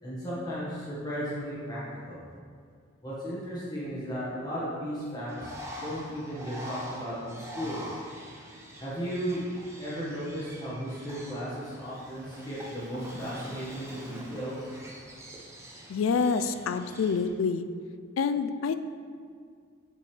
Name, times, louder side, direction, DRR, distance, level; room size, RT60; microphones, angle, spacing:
voice 1, 0.0-1.8 2.1-2.2 3.0-7.8 8.8-9.4 9.8-14.7, equal, 20° left, -9 dB, 1.5 m, -35 dB
Bird, 5.3-17.3, equal, 15° right, 0.8 m, -44 dB
voice 2, 15.9-17.6 18.2-18.8, left 5 dB, 75° left, 11 dB, 0.4 m, -27 dB
7.3 x 6.8 x 3.3 m, 2.1 s
head